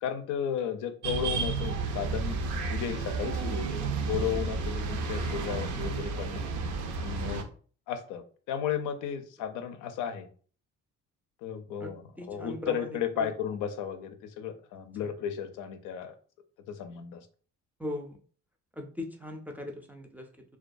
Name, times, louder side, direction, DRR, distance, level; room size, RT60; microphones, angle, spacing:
voice 1, 0.0-2.4 2.7-3.8 4.1-6.4 7.0-7.5 7.9-10.3 11.4-16.1 16.7-17.3, left 8 dB, 90° left, 7 dB, 0.5 m, -34 dB
sound 1, 1.0-7.4, right 4 dB, 75° right, 0.5 m, -32 dB
voice 2, 11.8-13.3 17.8-18.2 18.7-20.3, left 1 dB, 5° right, 2 dB, 0.3 m, -39 dB
2.2 x 2.2 x 2.5 m, 0.42 s
cardioid pair, 90°, 30 cm